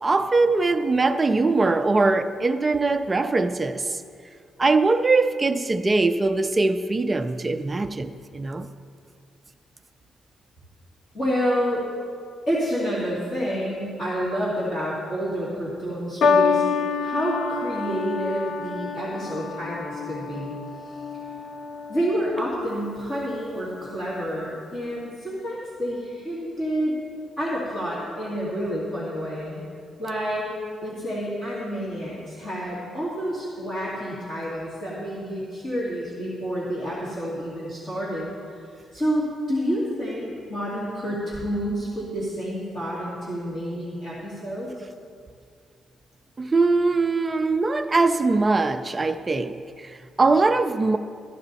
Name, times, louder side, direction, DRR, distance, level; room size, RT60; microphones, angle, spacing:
voice 1, 0.0-4.0 4.6-8.7 46.4-51.0, right 3 dB, 15° right, 0.3 m, -22 dB
voice 2, 11.1-11.8 12.5-16.6 17.0-20.5 20.8-21.0 21.9-26.9 27.4-29.6 30.0-30.5 30.8-38.3 38.6-44.7, equal, 30° left, 2.4 m, -29 dB
sound 1, 16.2-22.7 23.6-24.0, left 5 dB, 50° left, 0.4 m, -27 dB
14.5 x 12.5 x 4.1 m
cardioid pair, 175°, 0 cm